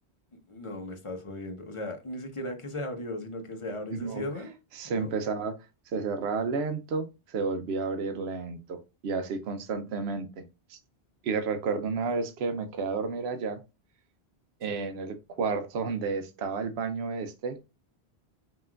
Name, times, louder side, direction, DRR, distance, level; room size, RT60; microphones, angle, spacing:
voice 1, 0.5-4.5 4.8-5.1 14.7-14.9, left 1 dB, 30° left, 0.9 m, -37 dB
voice 2, 4.7-5.5 5.9-10.8 11.2-13.6 14.6-17.6, right 4 dB, 75° right, 0.9 m, -31 dB
5.5 x 2.9 x 2.4 m
omnidirectional pair, 1.1 m